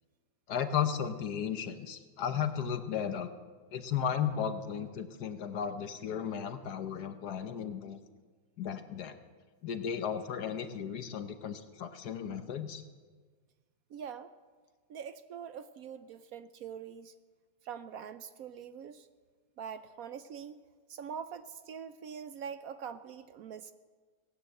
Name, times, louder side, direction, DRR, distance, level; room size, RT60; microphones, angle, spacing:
voice 1, 0.5-3.3 3.7-8.0 8.6-9.2 9.6-12.8, left 8 dB, 70° left, 9 dB, 1.5 m, -35 dB
voice 2, 13.9-14.3 14.9-17.1 17.6-19.1 19.6-20.6 20.9-23.7, right 7 dB, 70° right, 12 dB, 1.0 m, -43 dB
18.0 x 9.9 x 7.7 m, 1.5 s
omnidirectional pair, 1.8 m